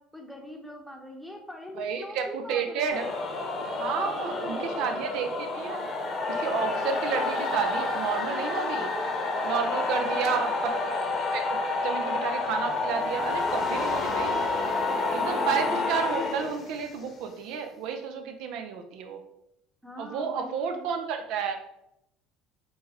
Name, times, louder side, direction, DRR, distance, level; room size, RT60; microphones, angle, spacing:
voice 1, 0.0-3.1 4.0-4.8 9.9-10.5 15.1-15.9 19.8-20.9, left 1 dB, ahead, 2 dB, 0.8 m, -43 dB
voice 2, 1.8-3.1 3.8-5.8 6.3-8.9 9.4-10.8 11.2-11.5 11.8-14.4 15.1-19.2 20.0-21.6, right 6 dB, 70° right, 6 dB, 0.5 m, -31 dB
sound 1, 2.9-17.1, left 3 dB, 40° left, 0.9 m, -29 dB
4.6 x 2.0 x 4.1 m, 0.82 s
supercardioid pair, 95°, 0 cm